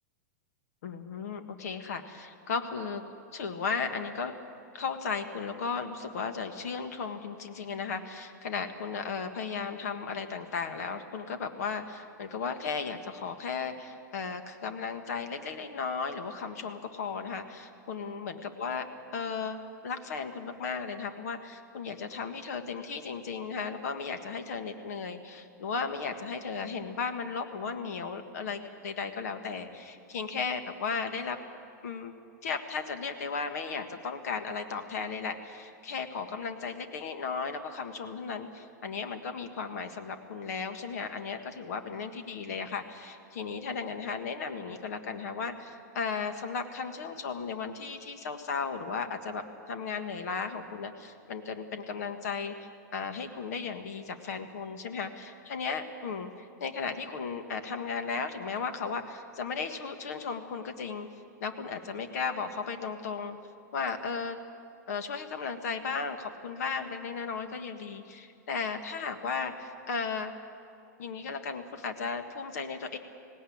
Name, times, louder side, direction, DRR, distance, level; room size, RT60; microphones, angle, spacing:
voice 1, 0.8-3.0 3.3-4.3 4.7-31.4 31.8-32.1 32.4-52.5 52.9-56.3 56.6-61.1 61.4-63.4 63.7-64.4 64.9-70.4 71.0-73.0, left 5 dB, 55° left, 7 dB, 1.6 m, -35 dB
18.5 x 18.0 x 8.7 m, 2.5 s
supercardioid pair, 170°, 10 cm